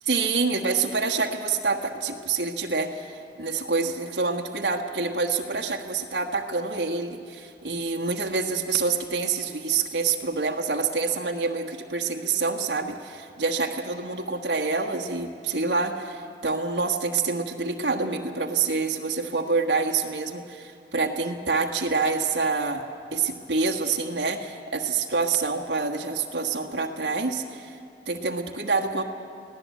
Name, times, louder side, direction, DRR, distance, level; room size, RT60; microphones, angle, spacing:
voice 1, 0.1-22.8 23.1-27.8 28.1-29.0, right 4 dB, 85° right, 1 dB, 1.4 m, -27 dB
24.5 x 17.0 x 8.4 m, 2.6 s
head